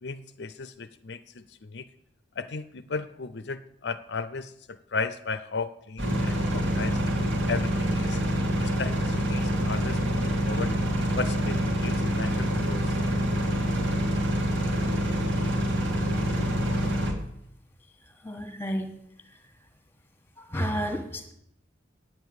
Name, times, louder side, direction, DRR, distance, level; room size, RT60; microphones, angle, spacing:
voice 1, 0.0-1.9 2.4-7.0 7.5-8.2 8.6-10.8 11.2-13.0, left 4 dB, 65° left, 12 dB, 0.5 m, -35 dB
sound 1, 6.0-17.1, equal, 80° right, 2.6 m, -26 dB
voice 2, 18.2-18.9 20.4-21.3, equal, 10° left, 6 dB, 1.4 m, -31 dB
9.1 x 9.0 x 8.0 m, 0.74 s
head